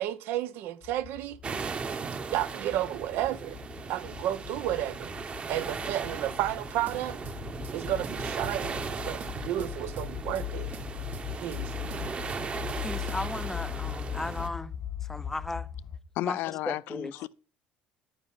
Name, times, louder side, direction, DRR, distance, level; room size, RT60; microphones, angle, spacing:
voice 1, 0.0-1.4 2.3-3.6 3.9-5.1 5.5-7.2 7.7-10.7 11.4-11.7, right 13 dB, 75° right, 1.0 m, -32 dB
sound 1, 0.8-16.0, left 11 dB, 50° left, 0.9 m, -40 dB
sound 2, 1.4-14.5, right 5 dB, 35° right, 1.2 m, -38 dB
sound 3, 6.9-7.8 8.0-8.9 9.2-10.5 10.7-11.6 11.9-12.8 13.1-13.3, right 7 dB, 55° right, 1.4 m, -46 dB
voice 2, 12.8-14.7 15.1-15.7 16.2-16.4 16.7-17.1, left 2 dB, 10° left, 0.6 m, -35 dB
voice 3, 16.2-17.3, left 16 dB, 75° left, 0.5 m, -33 dB
9.5 x 9.0 x 5.8 m
cardioid pair, 110°, 3 cm